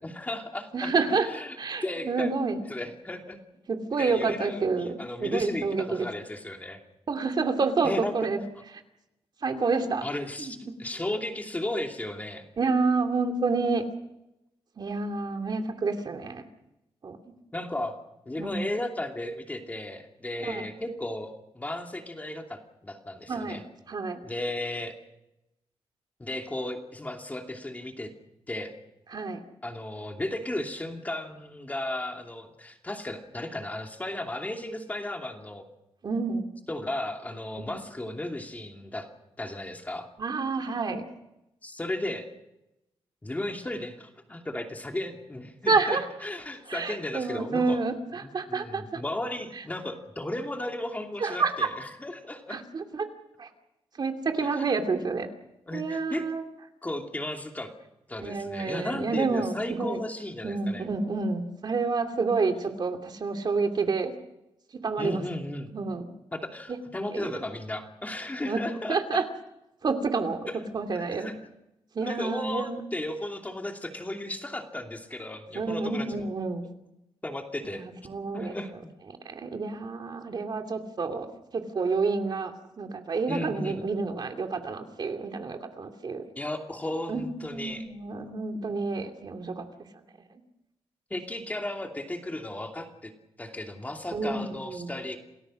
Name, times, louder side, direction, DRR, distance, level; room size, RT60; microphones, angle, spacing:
voice 1, 0.0-0.9 1.3-2.3 2.7-3.4 4.0-6.8 7.8-8.1 10.0-12.4 17.5-17.9 18.3-23.6 24.2-24.9 26.2-28.1 28.5-28.7 29.6-35.6 36.7-39.1 39.4-40.1 41.6-42.2 43.2-47.8 48.2-52.6 54.4-54.7 55.7-56.2 56.8-57.7 58.1-60.8 65.0-65.7 66.3-69.2 71.1-71.4 72.0-76.2 77.2-77.8 78.3-78.7 83.3-83.9 86.4-87.8 91.1-93.1 93.4-95.2, left 1 dB, 15° left, 3 dB, 2.7 m, -35 dB
voice 2, 0.7-1.3 1.6-2.6 3.7-6.1 7.1-8.4 9.4-10.0 10.4-10.8 12.6-13.8 14.8-16.4 17.0-17.3 18.4-18.6 20.4-20.6 23.3-23.6 23.9-24.2 29.1-29.4 36.0-36.5 37.6-37.8 40.2-41.0 45.7-46.1 46.7-49.0 49.6-49.7 51.2-51.7 52.5-53.1 53.4-53.5 54.0-55.3 55.7-56.4 58.2-60.0 60.4-64.1 64.8-65.2 65.7-66.1 66.7-66.8 67.1-67.3 68.4-68.6 68.9-69.2 69.8-70.5 70.7-71.3 71.9-72.8 75.5-76.6 77.7-78.5 79.2-86.2 87.1-89.7 90.3-90.4 94.1-94.9, right 4 dB, 45° right, 5 dB, 2.6 m, -29 dB
28.5 x 19.0 x 6.4 m, 0.89 s
wide cardioid pair, 150°, 10 cm